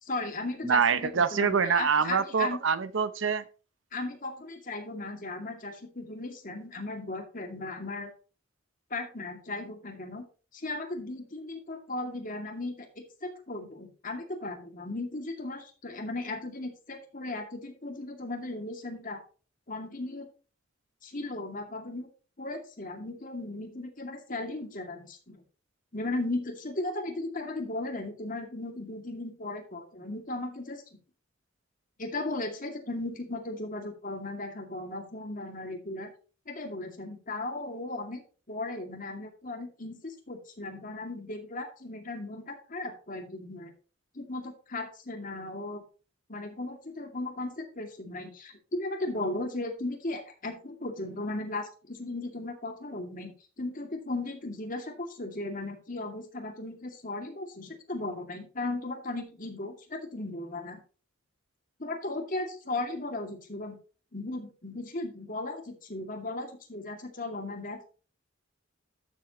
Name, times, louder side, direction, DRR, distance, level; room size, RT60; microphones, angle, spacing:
voice 1, 0.0-2.6 3.9-8.1 8.9-10.2 10.5-19.2 19.7-20.3 21.0-22.1 22.4-25.4 25.9-30.8 32.0-36.1 36.5-38.2 38.5-43.7 44.1-45.8 46.3-60.8 61.8-63.8 64.1-67.9, left 2 dB, 45° left, 2.4 m, -36 dB
voice 2, 0.6-3.4, right 6 dB, 70° right, 0.7 m, -25 dB
12.5 x 7.5 x 3.0 m
head